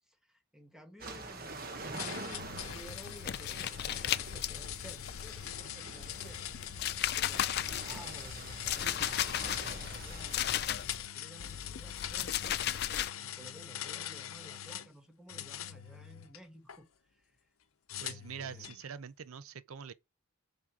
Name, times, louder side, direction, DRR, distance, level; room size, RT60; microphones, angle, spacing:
voice 1, 0.1-6.9 7.2-12.8 13.1-17.4 18.0-18.7, equal, 5° right, 1.2 m, -54 dB
sound 1, 1.0-10.7, right 2 dB, 45° right, 1.2 m, -46 dB
sound 2, 2.0-14.9 15.3-16.8 17.9-18.8, left 11 dB, 80° left, 0.8 m, -43 dB
sound 3, 2.3-5.6 6.0-11.1 11.4-13.1, left 11 dB, 50° left, 0.4 m, -36 dB
voice 2, 18.0-19.9, right 6 dB, 85° right, 0.6 m, -44 dB
6.7 x 6.1 x 4.8 m
head